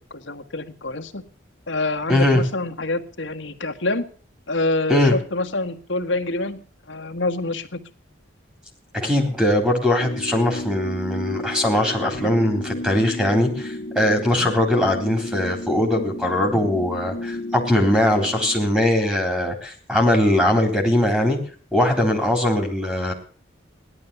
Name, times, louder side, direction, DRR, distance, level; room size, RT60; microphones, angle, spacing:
voice 1, 0.1-1.3 1.7-4.1 4.5-7.8, left 2 dB, 80° left, 5 dB, 1.7 m, -26 dB
voice 2, 2.1-2.4 4.9-5.1 8.9-21.4 21.7-23.1, left 1 dB, 5° right, 4 dB, 3.7 m, -20 dB
sound 1, 10.0-18.7, left 1 dB, 50° left, 1.1 m, -33 dB
17.0 x 12.0 x 6.9 m, 0.43 s
head